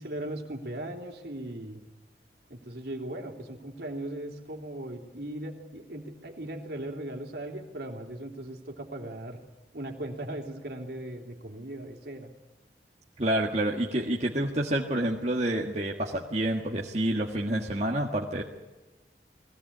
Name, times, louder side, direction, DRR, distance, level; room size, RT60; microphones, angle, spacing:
voice 1, 0.0-1.8 2.5-9.4 9.7-12.3, right 1 dB, 65° right, 2 dB, 3.1 m, -38 dB
voice 2, 13.2-18.4, right 1 dB, 40° right, -1 dB, 1.6 m, -28 dB
20.5 x 17.5 x 8.6 m, 1.1 s
head